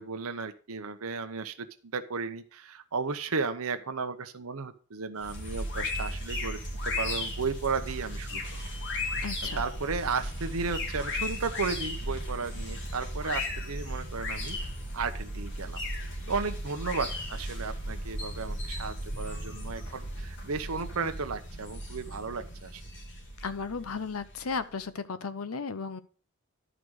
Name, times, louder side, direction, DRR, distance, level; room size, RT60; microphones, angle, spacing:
voice 1, 0.0-8.6 9.6-14.6 14.9-15.8 16.3-22.8, right 4 dB, 80° right, 7 dB, 0.8 m, -34 dB
sound 1, 5.2-24.6, left 1 dB, 60° left, 2.6 m, -36 dB
voice 2, 9.2-9.6 23.4-26.0, left 5 dB, 90° left, 13 dB, 0.8 m, -35 dB
11.0 x 5.1 x 6.3 m, 0.40 s
head